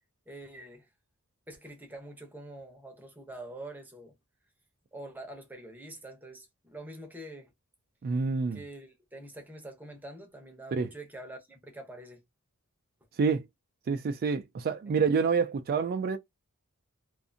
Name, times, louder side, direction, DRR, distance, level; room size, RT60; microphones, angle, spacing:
voice 1, 0.3-0.9 1.5-4.1 4.9-7.5 8.5-12.2 14.9-15.0, right 1 dB, 10° right, 0.7 m, -45 dB
voice 2, 8.0-8.6 10.7-10.9 13.2-13.5 13.9-16.2, right 5 dB, 45° right, 0.3 m, -27 dB
2.5 x 2.4 x 2.5 m
head